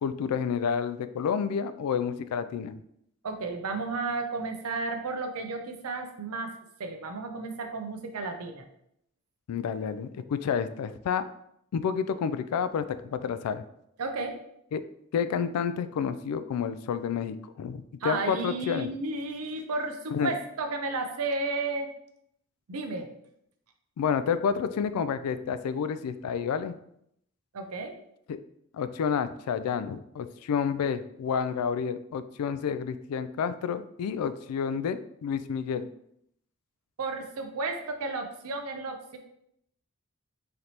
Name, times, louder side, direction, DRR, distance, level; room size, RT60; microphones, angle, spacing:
voice 1, 0.0-2.8 9.5-11.3 11.7-13.6 14.7-14.8 15.1-18.9 20.1-20.3 24.0-26.8 28.3-28.4 28.7-35.9, left 7 dB, 90° left, 15 dB, 0.3 m, -29 dB
voice 2, 3.2-6.5 6.8-8.6 14.0-14.4 18.0-21.9 22.7-23.1 27.5-28.0 37.0-39.2, right 3 dB, 85° right, 6 dB, 0.6 m, -33 dB
3.9 x 3.2 x 2.9 m, 0.73 s
head